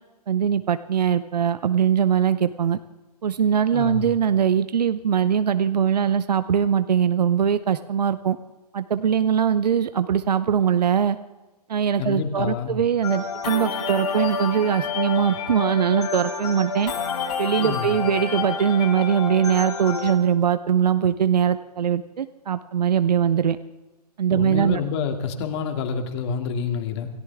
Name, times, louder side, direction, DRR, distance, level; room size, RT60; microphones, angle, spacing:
voice 1, 0.3-2.8 3.2-8.4 8.7-11.2 11.7-16.9 17.4-23.6 24.2-24.8, right 8 dB, 75° right, 12 dB, 0.8 m, -21 dB
voice 2, 3.7-4.1 12.0-12.8 17.6-17.9 24.3-27.1, left 6 dB, 40° left, 5 dB, 2.5 m, -28 dB
sound 1, 13.0-20.1, left 5 dB, 70° left, 6.4 m, -29 dB
27.5 x 14.5 x 3.6 m, 1.2 s
hypercardioid pair, 135°, 21 cm